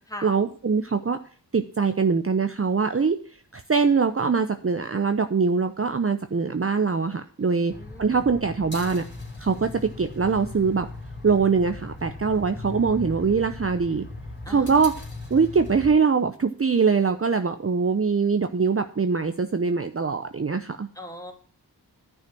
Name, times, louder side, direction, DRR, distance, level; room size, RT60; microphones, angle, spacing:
voice 1, 0.2-1.2 1.5-3.2 3.5-7.7 8.0-9.0 9.4-10.9 11.2-14.1 14.5-14.9 15.3-20.9, right 5 dB, 35° right, 8 dB, 0.7 m, -23 dB
voice 2, 7.4-8.2 14.4-14.7 20.9-21.3, left 1 dB, 10° left, 3 dB, 2.8 m, -40 dB
sound 1, 7.7-15.9, left 2 dB, 25° left, 3.5 m, -38 dB
10.5 x 6.2 x 6.1 m, 0.43 s
cardioid pair, 45°, 41 cm